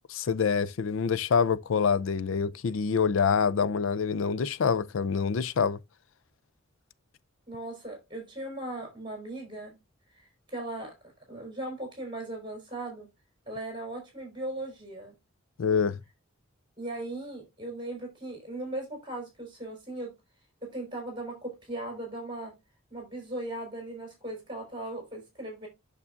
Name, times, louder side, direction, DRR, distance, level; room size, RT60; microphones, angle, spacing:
voice 1, 0.1-5.8 15.6-16.0, left 6 dB, 75° left, 0.4 m, -26 dB
voice 2, 7.5-9.8 10.1-10.9 11.3-13.1 13.5-15.1 16.8-20.1 20.6-22.5 22.9-25.7, right 1 dB, 25° right, 4.3 m, -38 dB
8.5 x 6.8 x 2.5 m
head